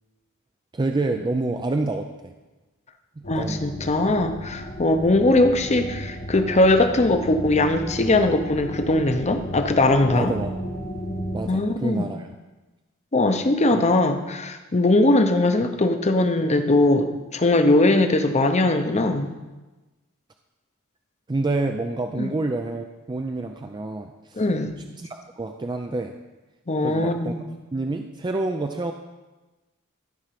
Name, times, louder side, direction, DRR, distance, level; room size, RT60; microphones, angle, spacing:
voice 1, 0.7-2.3 3.2-3.7 10.1-10.5 11.3-12.3 13.7-13.8 21.3-24.4 25.0-26.2 26.8-27.3 27.7-28.9, right 2 dB, 20° right, 5 dB, 0.4 m, -28 dB
sound 1, 3.2-11.4, equal, 45° left, 1.4 m, -34 dB
voice 2, 3.3-10.3 11.4-12.1 13.1-19.3 22.2-22.3 24.4-24.8 26.7-27.4, left 2 dB, 30° left, 7 dB, 0.8 m, -20 dB
13.0 x 5.0 x 5.9 m, 1.1 s
head